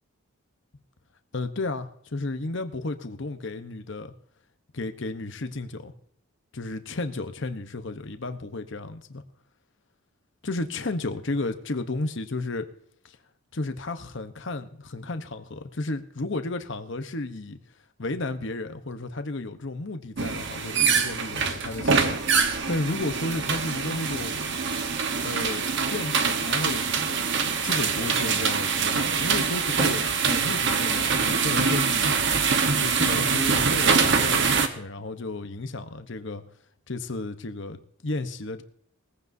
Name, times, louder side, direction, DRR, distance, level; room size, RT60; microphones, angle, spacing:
voice 1, 1.3-4.1 4.7-5.9 6.5-9.2 10.4-12.7 13.0-13.2 13.5-17.6 18.0-24.4 25.2-27.2 27.6-32.4 32.8-36.4 36.9-38.6, left 2 dB, 55° left, 9 dB, 1.0 m, -33 dB
sound 1, 20.2-34.7, right 5 dB, 55° right, 1.1 m, -24 dB
20.0 x 15.0 x 2.7 m, 0.67 s
head